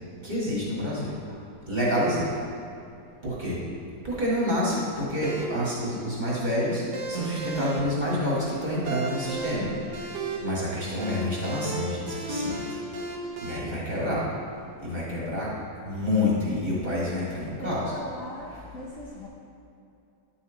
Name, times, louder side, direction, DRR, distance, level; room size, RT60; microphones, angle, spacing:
voice 1, 0.2-1.4 1.7-2.3 3.2-3.6 4.0-6.8 7.1-9.7 10.4-12.6 13.4-14.3 14.8-15.5 15.9-17.9, left 1 dB, 25° right, -7 dB, 1.9 m, -28 dB
sound 1, 5.2-13.6, right 2 dB, 80° right, 1.5 m, -35 dB
voice 2, 17.6-19.3, left 1 dB, 60° left, -3 dB, 1.1 m, -39 dB
10.0 x 5.7 x 3.9 m, 2.7 s
omnidirectional pair, 1.9 m